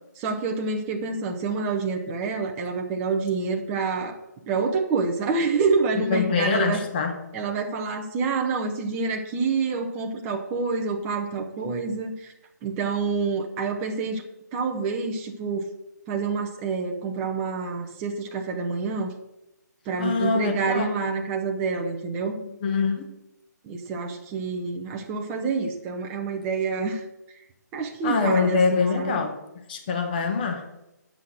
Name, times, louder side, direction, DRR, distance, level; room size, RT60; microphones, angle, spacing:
voice 1, 0.2-4.2 4.5-6.8 7.3-12.3 12.6-14.2 14.5-15.7 16.1-19.1 19.9-22.4 23.6-27.0 27.7-29.2, right 4 dB, 15° right, 1 dB, 0.8 m, -27 dB
voice 2, 6.0-7.2 20.0-20.9 22.4-23.1 28.0-29.4 29.7-30.7, left 4 dB, 30° left, 5 dB, 1.4 m, -24 dB
8.3 x 5.7 x 7.6 m, 0.92 s
hypercardioid pair, 165°, 10 cm